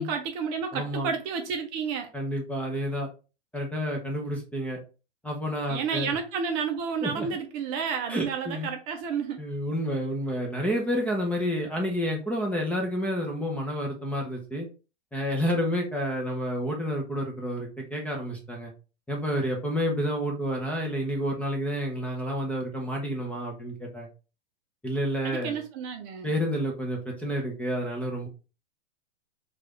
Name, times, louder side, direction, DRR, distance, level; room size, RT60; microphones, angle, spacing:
voice 1, 0.0-2.1 5.7-9.4 25.2-26.3, right 6 dB, 35° right, 0.6 m, -31 dB
voice 2, 0.7-1.1 2.1-3.1 3.5-4.8 5.2-6.2 7.0-7.3 8.1-8.7 9.4-14.7 15.1-18.7 19.1-24.1 24.8-25.6 26.2-28.3, equal, 5° left, 0.6 m, -29 dB
4.6 x 2.5 x 3.0 m
hypercardioid pair, 130°, 34 cm